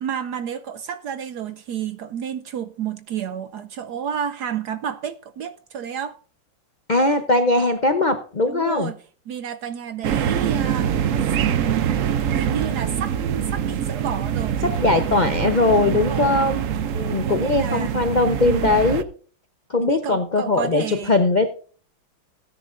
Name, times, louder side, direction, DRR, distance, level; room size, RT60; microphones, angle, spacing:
voice 1, 0.0-6.2 8.5-9.0 9.3-11.0 11.4-11.9 12.3-14.6 15.8-16.4 17.2-18.0 18.4-18.7 19.8-21.1, right 8 dB, 70° right, 1.0 m, -30 dB
voice 2, 6.9-8.9 14.6-16.6 16.9-19.0 19.7-21.5, left 2 dB, 75° left, 0.4 m, -20 dB
sound 1, 10.0-19.0, right 9 dB, 90° right, 0.6 m, -24 dB
16.5 x 10.5 x 2.6 m
omnidirectional pair, 2.3 m